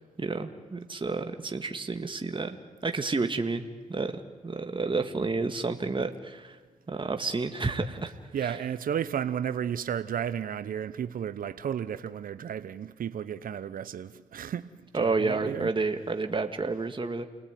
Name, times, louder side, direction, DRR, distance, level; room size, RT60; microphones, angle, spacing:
voice 1, 0.0-2.6 2.8-3.6 3.9-6.6 6.9-8.1 8.4-8.5 14.9-17.3, right 3 dB, 35° right, 2.0 m, -30 dB
voice 2, 8.3-15.7, right 9 dB, 75° right, 0.9 m, -33 dB
29.0 x 18.5 x 9.2 m
supercardioid pair, 50°, 15 cm